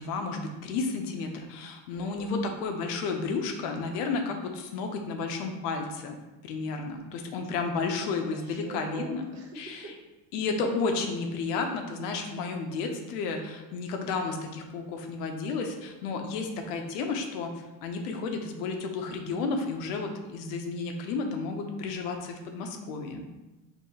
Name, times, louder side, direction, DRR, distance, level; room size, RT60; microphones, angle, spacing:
voice 1, 0.0-6.2 6.4-9.2 9.6-9.9 10.3-23.2, left 4 dB, 90° left, 4 dB, 0.8 m, -32 dB
voice 2, 1.9-2.3 7.4-7.7 8.2-10.0 22.6-23.3, right 3 dB, 35° right, 0 dB, 0.7 m, -45 dB
4.6 x 2.9 x 2.8 m, 1.1 s
cardioid pair, 155°, 46 cm